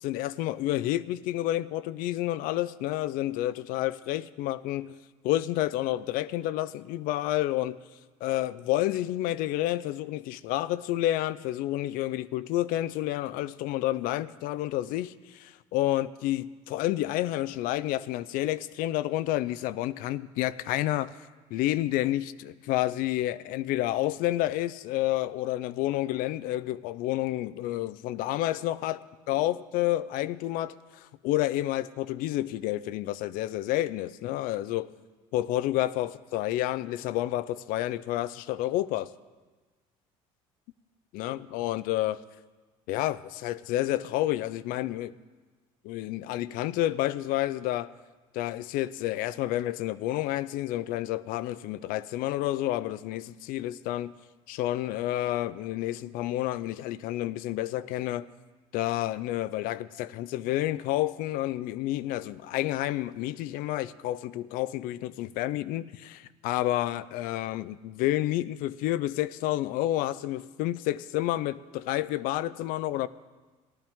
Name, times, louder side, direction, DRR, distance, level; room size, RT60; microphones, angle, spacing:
voice 1, 0.0-4.9 5.2-7.8 8.2-21.1 21.5-29.0 29.3-34.9 35.3-39.1 41.1-42.2 42.9-45.1 45.8-47.9 48.3-54.1 54.5-58.3 58.7-73.1, left 15 dB, 70° left, 0.4 m, -29 dB
16.0 x 12.0 x 3.6 m
supercardioid pair, 95°, 15 cm